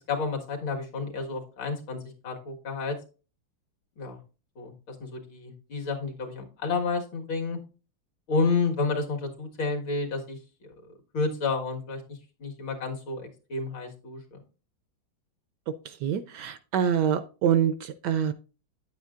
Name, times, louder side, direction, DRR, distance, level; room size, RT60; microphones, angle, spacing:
voice 1, 0.1-3.0 4.0-4.2 4.6-7.6 8.3-10.7 11.1-14.2, left 4 dB, 70° left, 2 dB, 2.4 m, -30 dB
voice 2, 15.8-18.3, right 8 dB, 75° right, 11 dB, 1.0 m, -26 dB
9.5 x 8.2 x 2.4 m, 0.34 s
omnidirectional pair, 2.3 m